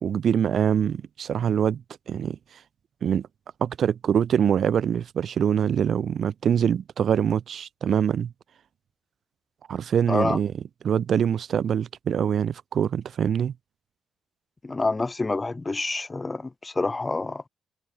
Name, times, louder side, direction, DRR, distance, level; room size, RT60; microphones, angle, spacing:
voice 1, 0.0-2.4 3.0-3.3 3.6-8.3 9.7-10.5 10.8-13.5, right 8 dB, 60° right, 0.8 m, -24 dB
voice 2, 10.1-10.4 14.6-17.4, left 3 dB, 20° left, 1.5 m, -27 dB
cardioid pair, 90°, 0 cm